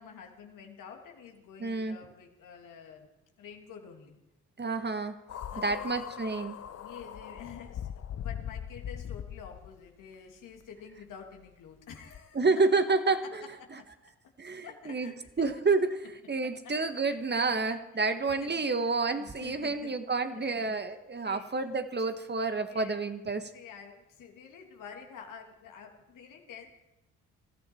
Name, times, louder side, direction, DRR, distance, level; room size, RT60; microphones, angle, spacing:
voice 1, 0.0-3.1 3.4-4.2 5.5-6.0 6.8-12.4 13.6-13.7 14.0-14.1 14.6-15.5 17.0-17.2 17.5-18.9 19.2-19.9 20.3-21.0 21.2-21.5 22.6-23.0 23.3-26.7, left 7 dB, 70° left, 2 dB, 2.7 m, -49 dB
voice 2, 1.6-2.0 4.6-5.1 5.6-6.6 12.3-13.2 14.4-23.5, right 3 dB, 30° right, 8 dB, 1.6 m, -29 dB
sound 1, 5.3-9.8 10.6-10.7 12.1-12.2, left 9 dB, 50° left, 0.8 m, -40 dB
20.0 x 14.0 x 4.6 m, 0.89 s
hypercardioid pair, 45°, 33 cm